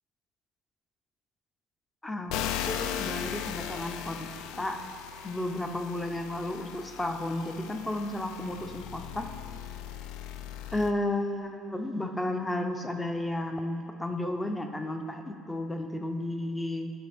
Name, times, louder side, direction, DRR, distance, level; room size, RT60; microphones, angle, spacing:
voice 1, 2.0-2.4 2.7-4.8 5.2-9.3 10.7-16.9, left 1 dB, 10° left, 5 dB, 0.6 m, -33 dB
sound 1, 2.3-10.9, left 10 dB, 80° left, 0.3 m, -38 dB
12.0 x 4.9 x 3.5 m, 2.4 s
cardioid pair, 125°, 0 cm